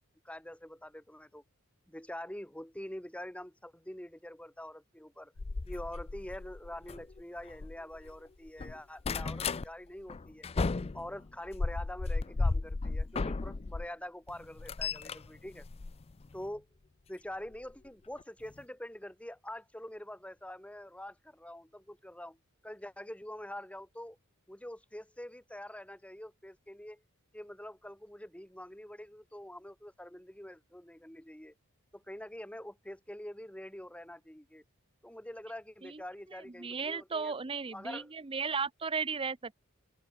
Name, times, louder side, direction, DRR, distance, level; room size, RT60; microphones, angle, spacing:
voice 1, 0.2-1.4 1.9-5.3 5.7-10.5 10.9-15.7 16.3-16.7 17.1-22.4 22.6-24.2 24.5-27.0 27.3-31.5 31.9-34.6 35.0-37.3 37.7-38.1, left 1 dB, 5° left, 3.0 m, -45 dB
sound 1, 5.4-8.2 8.5-9.7 10.1-13.9 14.3-16.5 17.5-17.7 18.2-18.3 18.5-18.6, left 3 dB, 25° left, 0.4 m, -35 dB
voice 2, 36.6-39.6, right 5 dB, 25° right, 0.7 m, -35 dB
open air
head